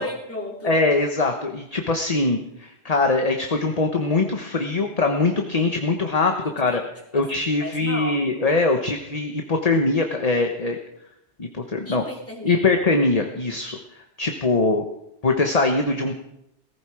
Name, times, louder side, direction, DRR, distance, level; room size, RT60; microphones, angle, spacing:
voice 1, 0.0-0.8 6.2-6.8 7.1-7.2 7.6-8.2 11.8-12.7, left 1 dB, 10° left, -3 dB, 3.8 m, -35 dB
voice 2, 0.6-6.8 7.1-10.8 11.4-12.0 12.4-13.8 14.2-14.8 15.2-16.2, left 3 dB, 35° left, 4 dB, 1.3 m, -22 dB
18.0 x 16.0 x 5.0 m, 0.81 s
omnidirectional pair, 1.2 m